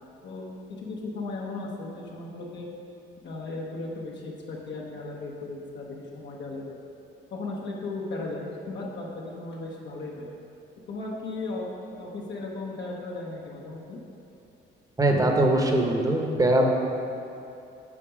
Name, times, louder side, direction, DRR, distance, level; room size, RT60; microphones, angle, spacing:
voice 1, 0.2-2.7 3.2-6.7 7.3-10.3 10.9-11.7 12.0-14.0, left 2 dB, 65° left, -3 dB, 1.1 m, -36 dB
voice 2, 15.0-16.7, right 1 dB, 15° right, 2 dB, 1.0 m, -21 dB
7.5 x 5.3 x 5.0 m, 2.7 s
cardioid pair, 90°, 20 cm